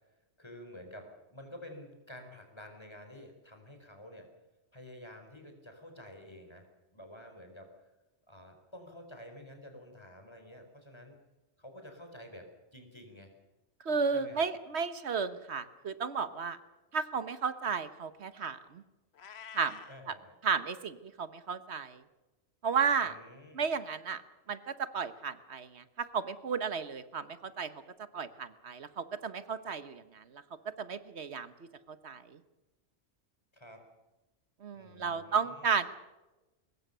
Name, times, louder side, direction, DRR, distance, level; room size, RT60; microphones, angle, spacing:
voice 1, 0.4-4.3 4.7-7.7 8.3-11.2 11.6-13.3 14.1-14.5 19.9-20.3 23.0-23.6 33.5-33.9 34.7-35.7, left 1 dB, 25° left, 4 dB, 4.6 m, -50 dB
voice 2, 13.8-16.6 16.9-18.8 19.5-19.8 20.4-22.0 22.6-23.2 23.5-24.2 24.5-27.7 28.1-30.4 30.8-31.5 31.9-32.4 34.6-35.9, right 6 dB, 75° right, 12 dB, 1.4 m, -33 dB
Meow, 19.1-20.0, left 7 dB, 75° left, 1.2 m, -49 dB
23.0 x 20.5 x 6.8 m, 1.1 s
omnidirectional pair, 1.1 m